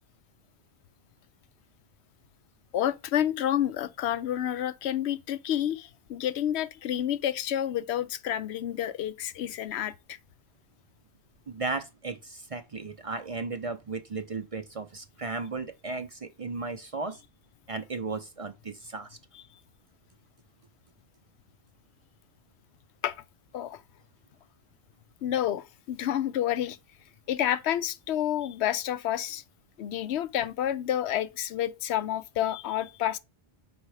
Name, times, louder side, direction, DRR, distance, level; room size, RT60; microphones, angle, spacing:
voice 1, 2.7-10.2 23.0-23.2 23.5-23.8 25.2-26.8 27.3-29.4 29.8-33.2, left 11 dB, 80° left, 0.9 m, -29 dB
voice 2, 11.5-17.2 17.7-19.2, right 3 dB, 40° right, 0.6 m, -35 dB
5.3 x 4.5 x 4.7 m
omnidirectional pair, 1.1 m